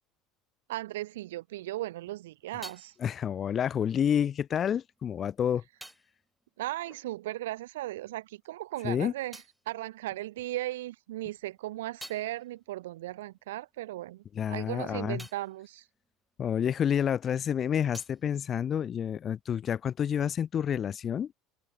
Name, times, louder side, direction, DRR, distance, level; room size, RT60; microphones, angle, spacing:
voice 1, 0.7-2.9 6.6-15.9, right 16 dB, 90° right, 0.5 m, -37 dB
sound 1, 1.9-7.8 8.0-10.7 11.2-17.2 17.4-19.5, right 1 dB, 5° right, 5.5 m, -55 dB
voice 2, 3.0-5.6 8.8-9.1 14.3-15.3 16.4-21.3, left 8 dB, 40° left, 1.3 m, -29 dB
supercardioid pair, 100°, 0 cm